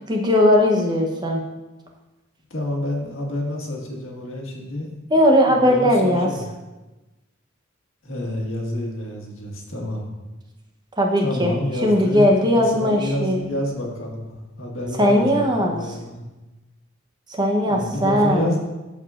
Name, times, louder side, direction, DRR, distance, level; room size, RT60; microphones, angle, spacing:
voice 1, 0.1-1.4 5.1-6.3 11.0-11.5 11.8-13.4 15.0-15.8 17.3-18.5, equal, 20° right, 1 dB, 0.8 m, -18 dB
voice 2, 2.5-4.9 5.5-6.5 8.0-10.1 11.2-16.2 17.7-18.6, left 1 dB, 70° left, -1 dB, 1.7 m, -28 dB
13.5 x 4.9 x 2.5 m, 1.1 s
head